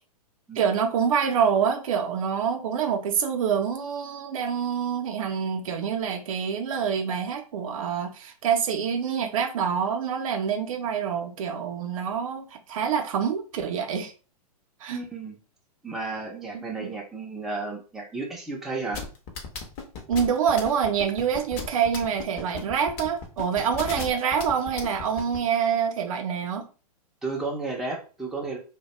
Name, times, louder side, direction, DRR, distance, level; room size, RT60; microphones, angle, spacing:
voice 1, 0.6-14.1 14.8-15.0 16.5-16.9 20.1-26.7, right 7 dB, 55° right, 0.5 m, -26 dB
voice 2, 14.9-15.4 15.8-19.0 27.2-28.6, right 3 dB, ahead, 0.5 m, -33 dB
sound 1, 18.9-25.4, left 5 dB, 35° left, 0.7 m, -35 dB
2.2 x 2.1 x 2.9 m
hypercardioid pair, 115°, 21 cm